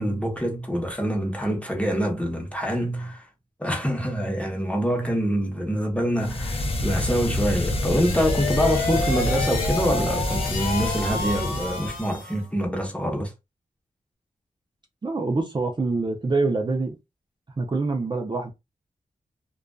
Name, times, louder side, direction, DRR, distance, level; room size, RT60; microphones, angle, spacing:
voice 1, 0.0-3.2 3.6-13.3, equal, 10° left, 0.9 m, -25 dB
sound 1, 6.2-12.1, left 1 dB, 45° left, 0.6 m, -28 dB
sound 2, 7.6-12.4, left 3 dB, 85° left, 0.8 m, -30 dB
voice 2, 15.0-17.0 17.6-18.5, right 3 dB, 35° right, 0.5 m, -25 dB
2.4 x 2.3 x 2.3 m
cardioid pair, 55°, 14 cm